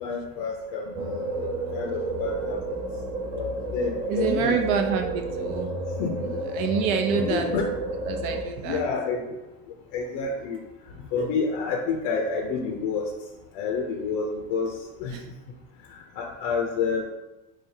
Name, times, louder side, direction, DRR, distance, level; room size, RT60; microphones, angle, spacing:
voice 1, 0.0-2.6 3.4-4.6 6.0-6.4 7.1-7.7 8.6-9.4 9.9-10.6 11.1-13.1 13.5-15.2 15.9-17.0, left 5 dB, 65° left, 2 dB, 0.6 m, -29 dB
sound 1, 0.9-8.4, right 1 dB, 15° right, 0.4 m, -31 dB
voice 2, 4.1-5.7 6.5-7.5 8.1-8.8 15.1-15.2, right 6 dB, 55° right, 4 dB, 0.7 m, -27 dB
3.8 x 3.2 x 2.7 m, 1.0 s
supercardioid pair, 130°, 38 cm